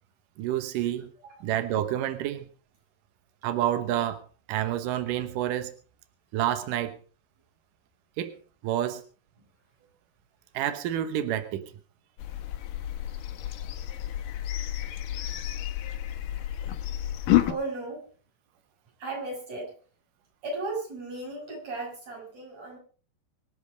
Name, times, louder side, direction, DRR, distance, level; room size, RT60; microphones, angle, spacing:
voice 1, 0.4-1.1 1.4-2.5 3.4-4.2 4.5-5.7 6.3-7.0 8.2-8.3 8.6-9.0 10.5-11.7, right 11 dB, 75° right, 10 dB, 2.0 m, -28 dB
sound 1, 12.2-17.5, left 13 dB, 65° left, 2.2 m, -30 dB
voice 2, 17.4-18.1 19.0-19.7 20.4-22.8, right 2 dB, 35° right, -1 dB, 7.9 m, -36 dB
25.0 x 8.4 x 5.1 m, 0.40 s
omnidirectional pair, 5.1 m